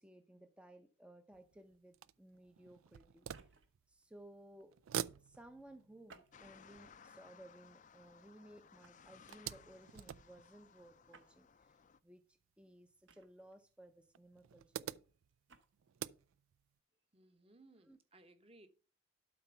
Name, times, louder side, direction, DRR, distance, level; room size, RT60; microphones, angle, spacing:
voice 1, 0.0-3.5 3.9-4.7 5.2-15.0 17.5-17.6 17.9-18.0, right 1 dB, 5° right, 0.6 m, -59 dB
sound 1, 1.3-4.3 4.6-8.5 8.9-11.5 12.4-12.5 12.9-13.0 14.1-16.7, right 9 dB, 85° right, 0.4 m, -48 dB
sound 2, 3.2-3.8 6.0-6.8 7.4-7.7 8.8-9.2 11.1-11.4 13.1-13.6 15.3-15.7, right 4 dB, 65° right, 1.2 m, -63 dB
sound 3, 6.3-12.0, left 6 dB, 40° left, 0.4 m, -62 dB
voice 2, 17.1-18.7, right 2 dB, 30° right, 1.0 m, -63 dB
12.0 x 4.4 x 5.6 m
head